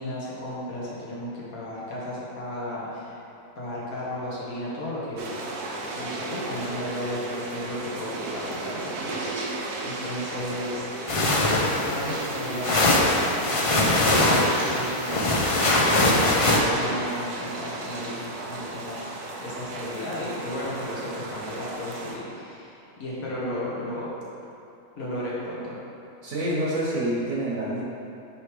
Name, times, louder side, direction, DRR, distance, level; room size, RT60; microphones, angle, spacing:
voice 1, 0.0-3.2 3.6-5.3 5.9-9.0 9.2-9.4 9.8-11.3 11.7-13.3 13.8-19.1 19.4-24.1 25.0-25.8, left 1 dB, 70° left, -7 dB, 1.9 m, -34 dB
sound 1, 5.2-22.2, right 2 dB, 85° right, 1.3 m, -34 dB
fabric movement t-shirt, 11.1-16.6, left 2 dB, 45° left, 0.4 m, -22 dB
voice 2, 26.2-27.8, right 1 dB, 65° right, -5 dB, 1.6 m, -27 dB
9.2 x 3.3 x 4.9 m, 2.8 s
omnidirectional pair, 1.6 m